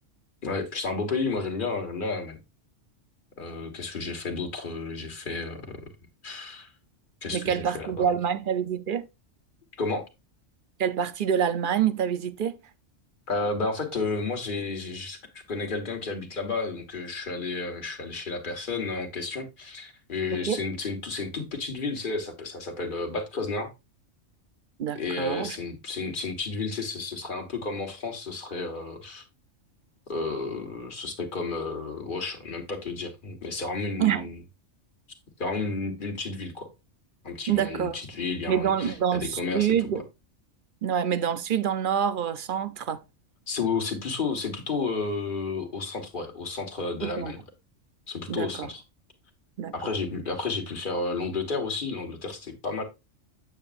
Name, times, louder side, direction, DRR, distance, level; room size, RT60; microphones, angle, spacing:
voice 1, 0.4-2.4 3.4-5.8 6.2-6.7 7.2-8.1 9.8-10.1 13.3-15.2 15.5-23.7 25.0-29.2 30.1-34.4 35.4-36.7 37.2-39.8 43.5-47.4 48.1-48.8 49.7-52.8, left 3 dB, 45° left, 1.7 m, -32 dB
voice 2, 7.3-9.1 10.8-12.6 20.3-20.6 24.8-25.6 34.0-34.3 37.5-38.0 38.5-40.0 40.8-43.0 47.0-47.3 48.3-48.7 49.6-49.9, right 8 dB, 55° right, 0.6 m, -27 dB
8.8 x 7.3 x 2.5 m
omnidirectional pair, 1.3 m